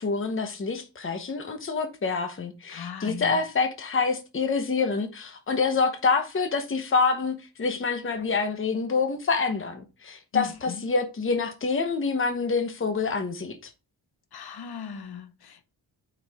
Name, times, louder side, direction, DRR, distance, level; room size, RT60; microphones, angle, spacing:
voice 1, 0.0-13.7, left 4 dB, 30° left, 0.9 m, -27 dB
voice 2, 2.7-3.4 10.3-10.8 14.3-15.7, left 7 dB, 60° left, 0.9 m, -37 dB
8.3 x 4.8 x 3.5 m
wide cardioid pair, 165°, 42 cm